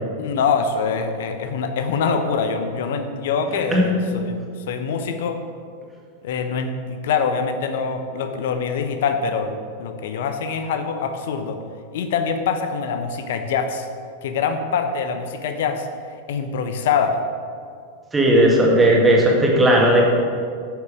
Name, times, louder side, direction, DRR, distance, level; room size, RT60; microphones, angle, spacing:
voice 1, 0.2-4.4 4.7-5.4 6.2-11.6 11.9-13.9 14.2-15.9 16.3-17.2, left 5 dB, 55° left, 7 dB, 0.9 m, -24 dB
voice 2, 18.1-20.1, right 1 dB, 10° right, -2 dB, 2.0 m, -15 dB
9.7 x 6.8 x 4.9 m, 2.2 s
figure-of-eight pair, 90°, 0 cm